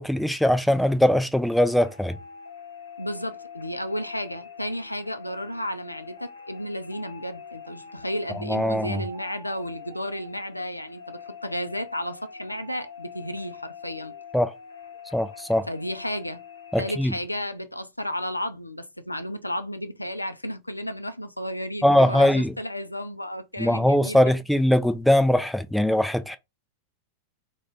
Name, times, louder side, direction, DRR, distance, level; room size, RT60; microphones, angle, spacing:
voice 1, 0.0-2.2 8.5-9.0 14.3-14.5 15.1-15.7 16.7-17.1 21.8-22.5 23.6-26.4, left 1 dB, ahead, 0.3 m, -21 dB
sound 1, 1.7-17.0, left 5 dB, 70° left, 0.8 m, -44 dB
voice 2, 3.0-14.1 15.7-16.4 16.8-24.3, equal, 85° left, 0.3 m, -33 dB
2.4 x 2.2 x 3.4 m
figure-of-eight pair, 90°, 0 cm